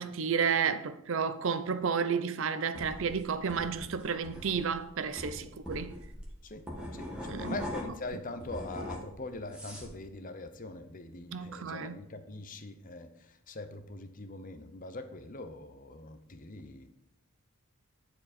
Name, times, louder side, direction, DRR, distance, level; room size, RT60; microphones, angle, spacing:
voice 1, 0.0-6.0 7.3-7.5 11.3-12.0, right 6 dB, 60° right, 0.5 m, -31 dB
sound 1, 2.8-8.1 8.4-10.0, left 1 dB, 5° right, 1.3 m, -41 dB
voice 2, 6.4-16.9, left 2 dB, 35° left, 0.6 m, -43 dB
10.5 x 4.6 x 4.2 m
head